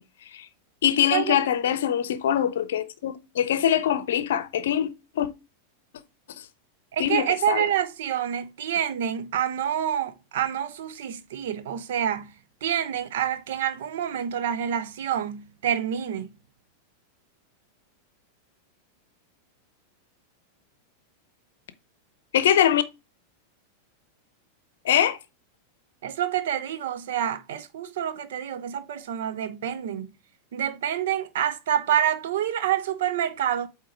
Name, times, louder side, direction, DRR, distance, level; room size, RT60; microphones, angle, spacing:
voice 1, 0.8-4.9 5.2-5.3 7.0-7.7 22.3-22.8 24.8-25.2, left 10 dB, 60° left, 0.7 m, -23 dB
voice 2, 6.9-12.3 12.6-16.3 26.0-30.1 30.5-33.7, right 10 dB, 55° right, 0.7 m, -27 dB
8.3 x 2.9 x 4.5 m
figure-of-eight pair, 90°, 0 cm